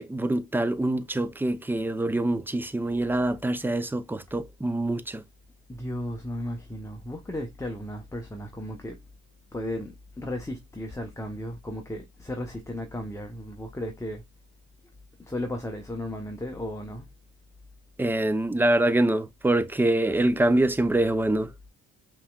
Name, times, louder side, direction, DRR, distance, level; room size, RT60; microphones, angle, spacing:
voice 1, 0.0-5.2 18.0-21.5, right 1 dB, 5° right, 0.5 m, -25 dB
voice 2, 5.7-9.0 9.5-14.2 15.2-17.1, left 1 dB, 10° left, 0.9 m, -35 dB
5.5 x 3.1 x 2.3 m
cardioid pair, 90°, 30 cm